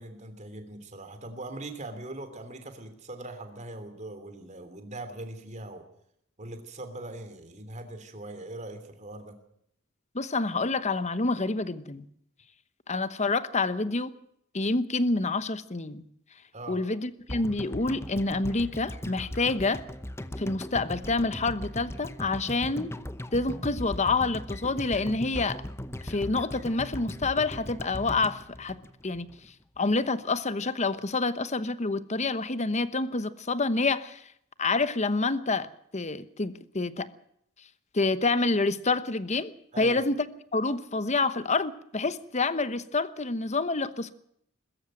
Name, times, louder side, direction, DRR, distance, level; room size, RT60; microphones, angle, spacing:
voice 1, 0.0-5.8 6.4-9.3 16.5-16.8 39.7-40.0, right 2 dB, 35° right, 3.1 m, -41 dB
voice 2, 10.1-12.1 12.9-14.1 14.5-16.0 16.7-19.8 20.4-22.9 23.3-25.6 26.0-28.8 29.0-29.3 29.8-34.2 34.6-37.1 37.9-40.2 40.5-44.1, left 3 dB, 35° left, 1.1 m, -28 dB
sound 1, 17.3-29.5 29.8-29.9, left 1 dB, 10° left, 0.8 m, -38 dB
21.5 x 14.0 x 9.2 m
head